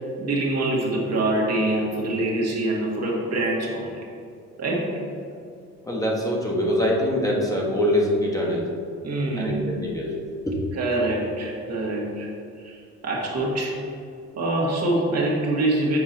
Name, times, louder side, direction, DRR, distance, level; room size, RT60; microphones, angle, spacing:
voice 1, 0.2-4.1 4.6-4.9 9.0-9.7 10.8-12.3 12.6-13.8 14.4-16.0, right 2 dB, 55° right, -2 dB, 1.7 m, -25 dB
voice 2, 5.8-8.7 9.4-10.2 10.5-10.6, equal, 10° left, -3 dB, 1.3 m, -24 dB
7.3 x 4.7 x 4.3 m, 2.4 s
cardioid pair, 90°, 30 cm